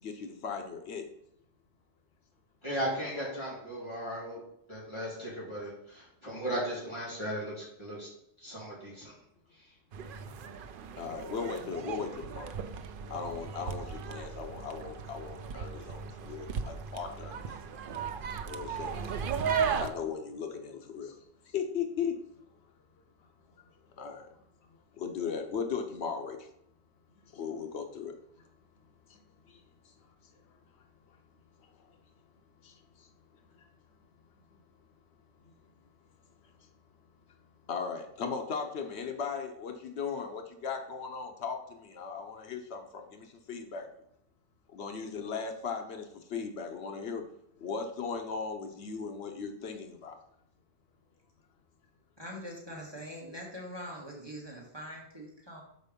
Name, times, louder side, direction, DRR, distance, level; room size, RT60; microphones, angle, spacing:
voice 1, 0.0-1.0 11.0-12.5 13.1-17.6 18.5-19.0 19.7-21.2 21.5-22.2 24.0-24.3 25.0-26.5 27.2-28.1 29.1-29.9 31.8-31.9 32.6-33.1 33.5-33.7 35.4-35.5 36.6-36.7 37.7-43.9 44.7-47.2 47.6-50.2, left 6 dB, 85° left, 5 dB, 1.0 m, -37 dB
voice 2, 2.6-4.4 4.7-8.1 8.4-9.2 9.5-9.7, equal, 25° left, -7 dB, 3.2 m, -36 dB
sound 1, 9.9-19.9, right 6 dB, 60° right, 0.7 m, -36 dB
voice 3, 52.2-55.6, equal, 25° right, -3 dB, 1.5 m, -43 dB
6.5 x 4.5 x 5.2 m, 0.73 s
omnidirectional pair, 1.1 m